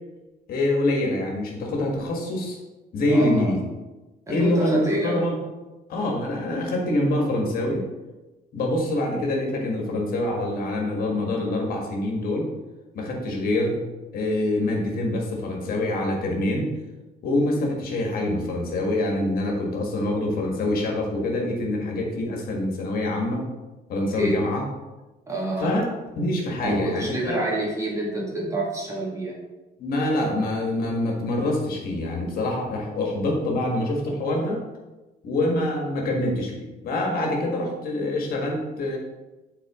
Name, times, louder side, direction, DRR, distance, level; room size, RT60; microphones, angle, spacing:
voice 1, 0.5-2.6 2.9-3.6 4.3-5.4 5.9-7.8 8.5-12.5 12.9-13.8 14.1-16.7 17.2-23.4 23.9-24.6 25.6-25.8 26.2-27.5 29.8-34.6 35.2-39.0, left 1 dB, 60° left, 0 dB, 1.5 m, -25 dB
voice 2, 3.1-3.6 4.3-5.3 24.2-24.3 25.3-25.8 26.6-29.4, right 1 dB, 20° right, -3 dB, 1.8 m, -28 dB
7.8 x 3.9 x 3.6 m, 1.1 s
cardioid pair, 110°, 17 cm